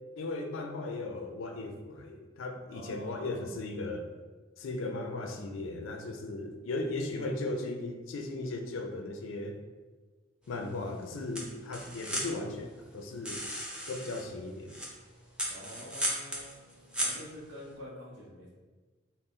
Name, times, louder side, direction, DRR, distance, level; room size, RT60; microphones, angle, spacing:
voice 1, 0.2-4.1 4.6-9.6 10.5-13.4 13.9-14.8, left 2 dB, 85° left, 4 dB, 0.4 m, -37 dB
voice 2, 2.7-3.5 15.4-16.5 17.0-18.5, equal, 65° right, -7 dB, 0.7 m, -46 dB
sound 1, 10.4-17.7, equal, 5° right, 0.5 m, -38 dB
3.9 x 2.1 x 3.7 m, 1.3 s
head